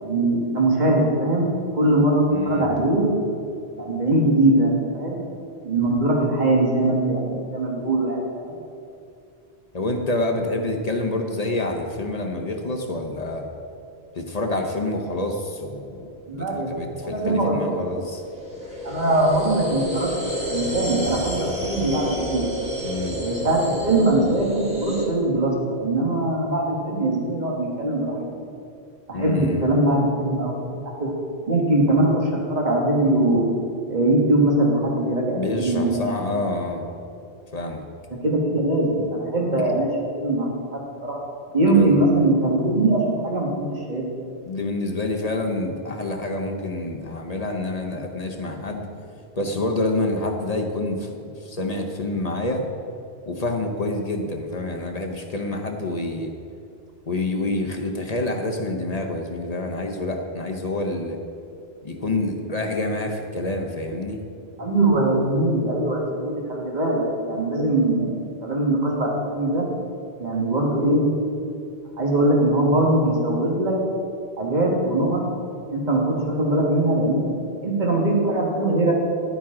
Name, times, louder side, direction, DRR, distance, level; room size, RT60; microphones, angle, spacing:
voice 1, 0.0-1.5 1.7-3.0 3.8-5.2 5.6-8.6 16.3-17.9 18.8-20.2 20.5-22.5 23.2-28.3 29.1-30.7 31.0-31.1 31.5-33.5 33.9-36.0 36.3-36.4 38.1-39.9 40.1-41.2 41.5-44.0 64.6-69.6 70.2-71.0 72.0-73.7 74.4-75.2 75.7-78.9, right 1 dB, 40° right, -2 dB, 1.7 m, -21 dB
voice 2, 2.3-2.7 9.7-13.5 14.1-18.2 22.8-23.2 29.1-29.6 35.3-36.9 37.5-37.8 39.6-39.7 41.7-41.9 44.4-48.9 49.4-52.7 53.3-56.3 57.1-61.2 61.8-64.2, left 2 dB, 40° left, 2 dB, 0.9 m, -27 dB
sound 1, 17.5-25.1, equal, 5° right, 1.7 m, -30 dB
11.0 x 9.1 x 3.7 m, 2.7 s
omnidirectional pair, 1.1 m